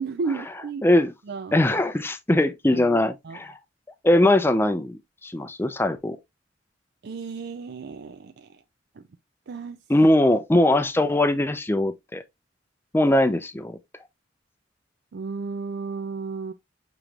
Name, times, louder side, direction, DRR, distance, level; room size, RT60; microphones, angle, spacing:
voice 1, 0.0-0.8 1.3-1.6 2.7-3.0 3.2-3.4 7.0-8.6 8.9-9.0 9.5-9.8 15.1-16.5, right 4 dB, 55° right, 0.4 m, -33 dB
voice 2, 1.5-3.6 4.0-6.2 9.9-12.2 12.9-13.8, left 1 dB, 10° left, 0.4 m, -21 dB
6.7 x 3.0 x 2.3 m
head